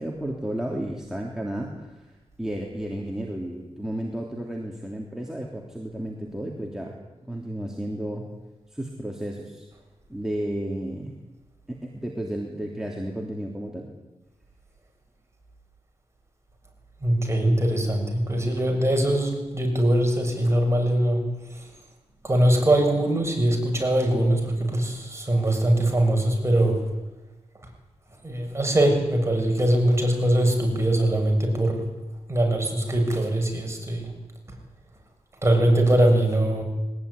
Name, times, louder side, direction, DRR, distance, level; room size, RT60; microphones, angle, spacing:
voice 1, 0.0-7.0 7.2-8.3 8.7-9.7 10.1-11.2 11.7-13.9, right 1 dB, 5° right, -1 dB, 3.2 m, -32 dB
voice 2, 17.0-21.2 21.5-21.7 22.2-26.9 28.2-31.9 32.3-34.1 35.4-36.6, right 1 dB, 20° right, 2 dB, 6.9 m, -22 dB
22.0 x 19.0 x 9.9 m, 1.1 s
wide cardioid pair, 105°, 12 cm